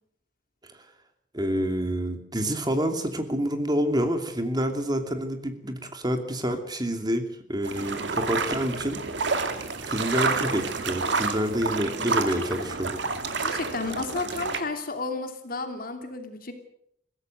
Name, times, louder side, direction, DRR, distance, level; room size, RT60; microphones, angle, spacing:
voice 1, 1.3-7.2 7.5-9.0 9.8-13.0, equal, 20° right, 6 dB, 2.7 m, -28 dB
sound 1, 7.6-14.6, right 4 dB, 70° right, 2.3 m, -29 dB
voice 2, 13.4-16.5, left 3 dB, 50° left, 6 dB, 2.9 m, -32 dB
22.0 x 16.5 x 8.0 m, 0.73 s
head